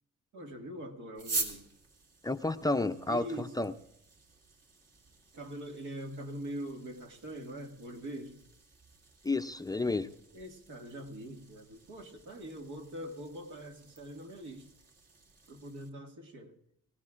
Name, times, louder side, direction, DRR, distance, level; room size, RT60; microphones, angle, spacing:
voice 1, 0.3-1.7 3.1-3.5 5.3-8.4 10.3-14.7 15.5-16.6, equal, 80° right, 2.0 m, -43 dB
sound 1, 1.1-15.9, right 3 dB, 55° right, 2.4 m, -46 dB
voice 2, 2.2-3.7 9.2-10.1, left 2 dB, 10° left, 0.5 m, -31 dB
24.0 x 16.0 x 2.5 m
cardioid pair, 90°, 30 cm